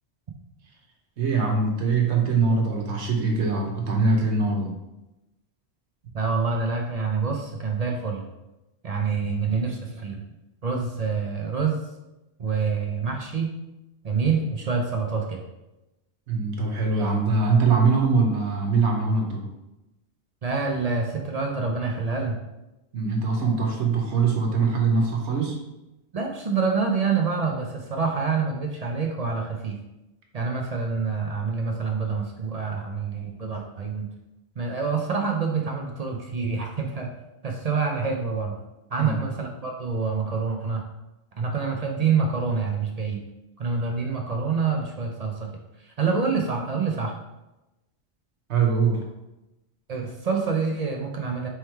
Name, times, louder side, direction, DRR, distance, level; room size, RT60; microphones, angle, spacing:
voice 1, 1.2-4.7 16.3-19.5 22.9-25.6 39.0-39.1 48.5-49.0, right 4 dB, 85° right, 1 dB, 1.2 m, -22 dB
voice 2, 6.1-8.3 8.8-10.2 10.6-11.8 12.4-13.5 14.0-15.4 20.4-22.4 26.1-29.8 30.3-34.1 34.6-37.1 37.4-38.6 38.9-40.8 41.4-43.2 43.6-45.5 45.8-47.1 49.9-51.5, right 5 dB, 50° right, 1 dB, 0.5 m, -26 dB
3.4 x 3.2 x 4.4 m, 0.96 s
omnidirectional pair, 1.1 m